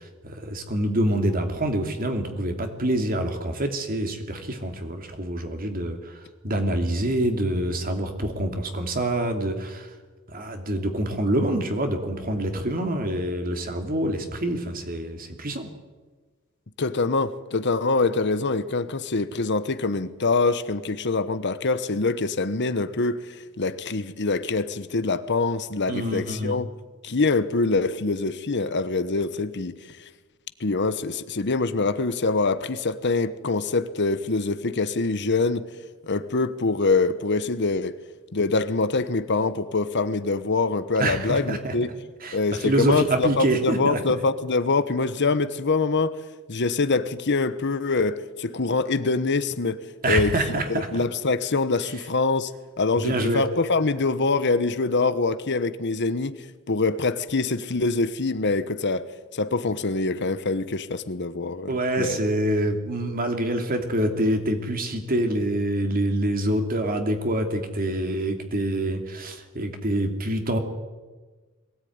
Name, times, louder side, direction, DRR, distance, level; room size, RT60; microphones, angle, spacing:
voice 1, 0.0-9.9 10.3-15.7 25.9-26.6 41.0-41.7 42.2-44.2 50.0-51.0 53.0-53.4 61.7-70.6, right 1 dB, 45° right, 2.8 m, -26 dB
voice 2, 16.8-26.7 27.0-30.1 30.6-35.7 36.0-38.0 38.3-41.9 42.3-46.2 46.5-50.3 50.7-52.5 52.8-59.0 59.3-62.2, left 3 dB, 55° left, 1.1 m, -24 dB
22.5 x 17.5 x 9.6 m
head